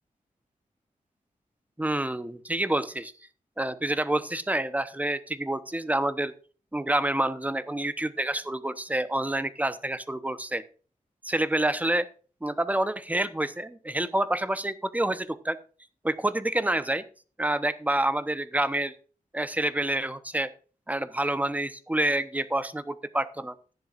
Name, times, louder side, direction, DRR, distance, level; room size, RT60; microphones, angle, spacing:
voice 1, 1.8-3.1 3.6-6.3 6.7-10.6 11.2-12.1 12.4-15.6 16.0-17.0 17.4-19.0 19.3-20.5 20.9-23.5, right 1 dB, 10° right, 12 dB, 1.0 m, -28 dB
15.0 x 10.0 x 2.5 m, 0.38 s
wide cardioid pair, 125°, 14 cm